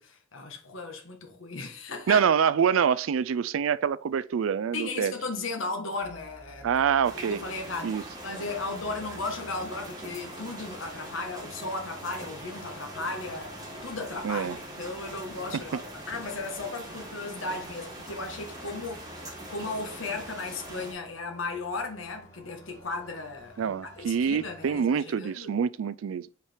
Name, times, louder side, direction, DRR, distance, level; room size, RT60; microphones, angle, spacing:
voice 1, 0.0-2.2 4.7-6.8 7.2-15.8 16.1-25.5, left 3 dB, 80° left, 1.5 m, -36 dB
voice 2, 2.1-5.1 6.6-7.4 7.8-8.0 14.2-14.6 23.6-26.3, right 7 dB, 85° right, 0.4 m, -25 dB
sound 1, 6.0-24.8, equal, 15° left, 2.1 m, -53 dB
sound 2, 7.0-20.9, right 1 dB, 20° right, 2.4 m, -42 dB
5.9 x 4.9 x 4.5 m
head